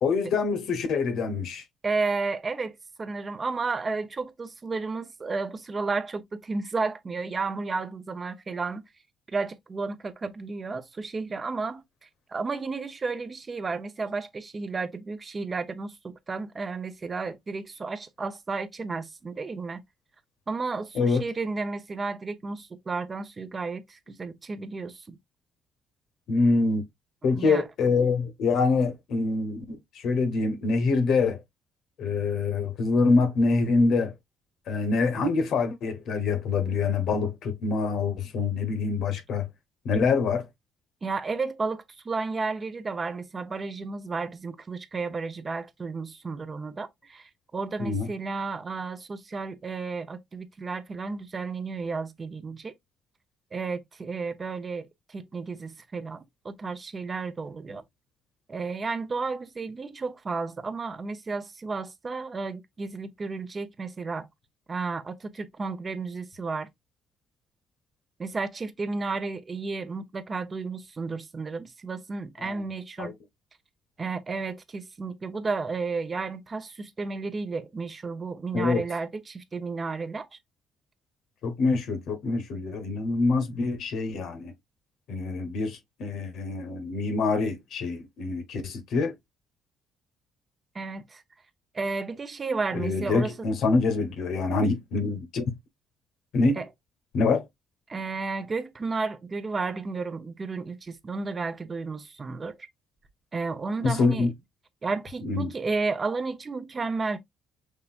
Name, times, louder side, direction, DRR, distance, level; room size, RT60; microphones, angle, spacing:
voice 1, 0.0-1.6 20.9-21.2 26.3-26.8 27.2-31.4 32.0-34.1 34.7-39.5 39.8-40.4 47.8-48.1 72.4-72.5 73.0-73.1 78.5-78.8 81.4-84.5 85.1-89.1 92.7-95.4 96.3-96.6 97.1-97.5 103.8-104.3 105.2-105.5, left 4 dB, 65° left, 1.0 m, -25 dB
voice 2, 1.8-8.8 9.3-11.8 12.3-19.8 20.5-25.2 27.2-27.6 41.0-52.7 53.5-57.8 58.5-64.3 64.7-66.7 68.2-73.1 74.0-80.3 90.7-91.2 91.7-93.5 96.6-96.7 97.9-102.5 103.3-104.3 104.8-107.2, right 4 dB, 25° right, 0.7 m, -32 dB
5.5 x 3.4 x 2.4 m
cardioid pair, 120°, 0 cm